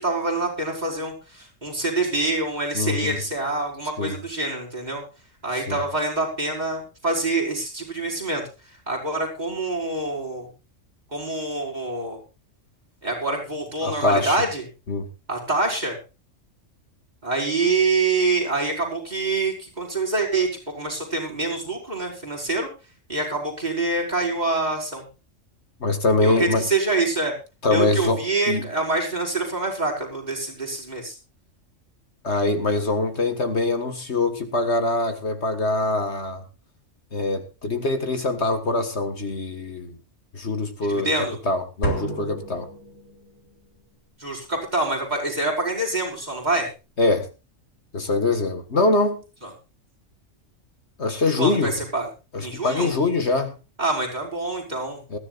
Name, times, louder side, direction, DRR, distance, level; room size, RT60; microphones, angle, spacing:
voice 1, 0.0-5.0 5.4-10.5 11.1-12.2 13.0-14.6 15.3-16.0 17.2-22.7 23.1-25.0 26.2-27.3 27.7-31.2 40.8-41.4 44.2-46.7 49.4-49.5 51.4-52.1 52.4-52.9 53.8-55.0, right 3 dB, 35° right, -1 dB, 5.3 m, -26 dB
voice 2, 2.7-3.2 4.0-4.1 5.7-5.8 13.8-14.4 14.9-15.1 25.8-26.7 27.6-28.2 28.5-28.7 32.2-36.4 37.1-40.0 40.3-41.1 41.5-42.7 47.0-47.3 47.9-49.2 51.0-51.7 52.3-53.6 55.1-55.2, left 2 dB, 60° left, 7 dB, 2.0 m, -23 dB
sound 1, 41.8-43.5, right 2 dB, 75° left, 4.2 m, -31 dB
20.5 x 14.5 x 2.5 m, 0.30 s
omnidirectional pair, 1.3 m